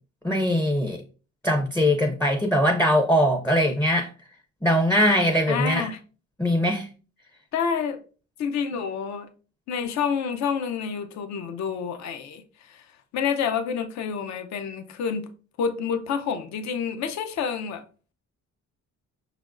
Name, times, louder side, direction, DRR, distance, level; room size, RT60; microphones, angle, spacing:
voice 1, 0.2-1.0 1.4-4.1 4.6-5.9 6.4-6.9, equal, 5° left, 0.4 m, -21 dB
voice 2, 5.5-6.0 7.5-8.0 8.4-9.3 9.7-12.9 13.1-15.3 15.6-17.8, left 6 dB, 70° left, 0.6 m, -28 dB
5.4 x 3.3 x 2.4 m
cardioid pair, 100°, 29 cm